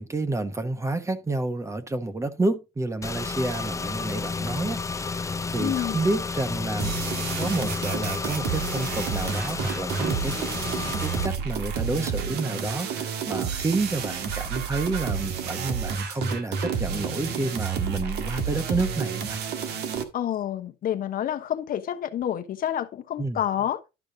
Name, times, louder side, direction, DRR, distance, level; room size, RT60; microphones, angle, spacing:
voice 1, 0.0-7.0 7.4-10.4 10.8-19.4 23.2-23.4, right 2 dB, 15° right, 1.1 m, -30 dB
Car / Engine, 3.0-11.3, left 4 dB, 20° left, 0.5 m, -31 dB
voice 2, 5.6-6.0 20.1-23.8, left 10 dB, 55° left, 1.0 m, -28 dB
sound 1, 6.8-20.0, right 7 dB, 75° right, 1.7 m, -30 dB
12.0 x 5.3 x 3.9 m
cardioid pair, 110°, 17 cm